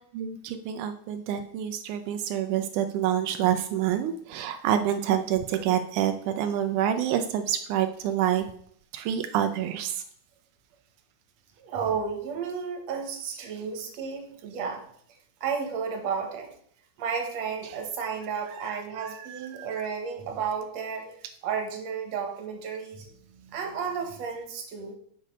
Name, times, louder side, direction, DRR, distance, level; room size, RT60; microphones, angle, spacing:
voice 1, 0.1-8.4 8.9-10.0 17.6-17.7 18.6-19.7, right 10 dB, 90° right, 7 dB, 1.7 m, -27 dB
voice 2, 11.6-14.8 15.4-16.5 17.0-21.1 21.4-25.0, right 6 dB, 60° right, 2 dB, 2.1 m, -32 dB
6.6 x 5.3 x 5.4 m, 0.64 s
omnidirectional pair, 4.2 m